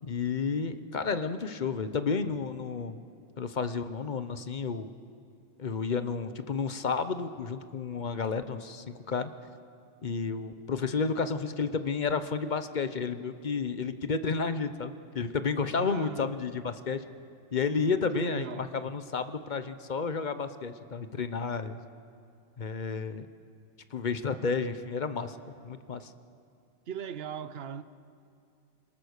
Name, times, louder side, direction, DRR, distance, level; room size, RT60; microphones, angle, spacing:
voice 1, 0.0-3.0 3.4-4.9 5.6-9.3 10.0-17.0 17.5-21.8 22.6-23.3 23.9-25.4 25.6-26.1, left 5 dB, 40° left, 0.8 m, -31 dB
voice 2, 15.8-16.3 18.1-18.7 26.9-27.8, right 7 dB, 55° right, 0.9 m, -38 dB
27.0 x 18.5 x 6.5 m
omnidirectional pair, 1.4 m